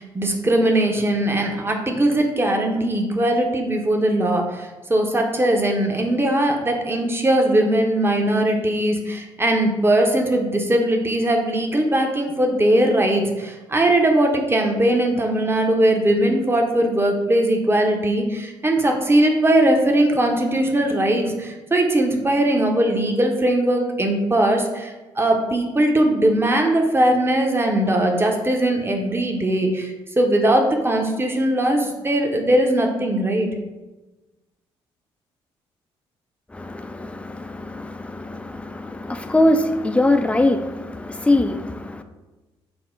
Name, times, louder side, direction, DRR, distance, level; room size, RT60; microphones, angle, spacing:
voice 1, 0.0-33.5, right 1 dB, 15° right, 2 dB, 0.8 m, -20 dB
voice 2, 36.5-42.0, left 1 dB, 10° left, 8 dB, 0.4 m, -22 dB
6.0 x 2.1 x 3.7 m, 1.1 s
hypercardioid pair, 45°, 13 cm